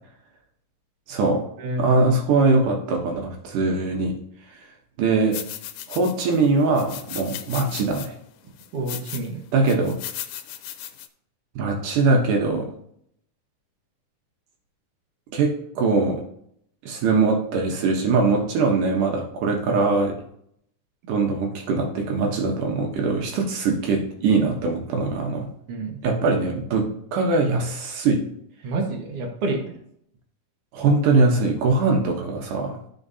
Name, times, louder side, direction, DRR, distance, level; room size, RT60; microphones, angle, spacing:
voice 1, 1.1-1.4 1.8-4.1 5.0-5.4 5.9-8.1 9.5-10.0 11.6-12.7 15.3-16.2 16.8-20.1 21.1-25.5 26.0-28.2 30.7-32.8, right 3 dB, 75° right, 1 dB, 2.6 m, -22 dB
sound 1, 5.3-6.4 6.8-8.1 8.6-9.3 9.7-11.1, left 11 dB, 80° left, 2.1 m, -36 dB
voice 2, 8.7-9.4 25.7-26.0 28.6-29.7, right 2 dB, 55° right, 1 dB, 2.0 m, -28 dB
13.5 x 4.9 x 2.7 m, 0.69 s
omnidirectional pair, 3.8 m